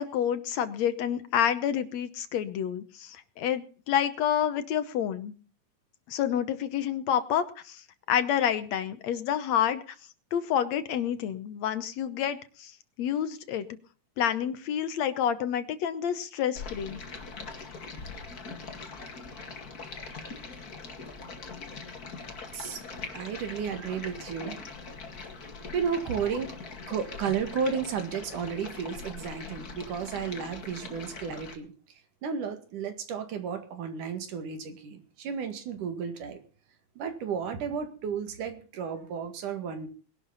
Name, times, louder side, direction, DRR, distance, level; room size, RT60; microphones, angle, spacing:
voice 1, 0.0-5.3 6.1-10.0 10.3-13.7 14.2-17.0, left 9 dB, 65° left, 12 dB, 2.0 m, -29 dB
Stream, 16.6-31.6, left 4 dB, 30° left, 2.2 m, -42 dB
voice 2, 22.5-24.6 25.7-26.5 26.9-31.7 32.2-36.4 37.0-39.9, right 6 dB, 75° right, 8 dB, 3.5 m, -33 dB
20.5 x 11.5 x 4.0 m, 0.39 s
omnidirectional pair, 3.6 m